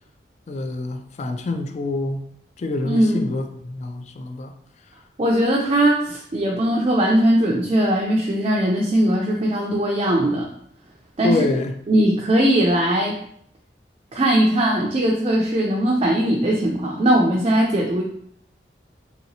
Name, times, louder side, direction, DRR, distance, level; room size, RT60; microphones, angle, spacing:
voice 1, 0.5-2.3 2.6-4.5 11.2-11.7, left 2 dB, 40° left, 0.3 m, -26 dB
voice 2, 2.8-3.2 5.2-10.5 11.2-11.4 11.9-13.1 14.1-18.0, right 1 dB, 30° right, 0.4 m, -19 dB
3.2 x 2.9 x 2.7 m
head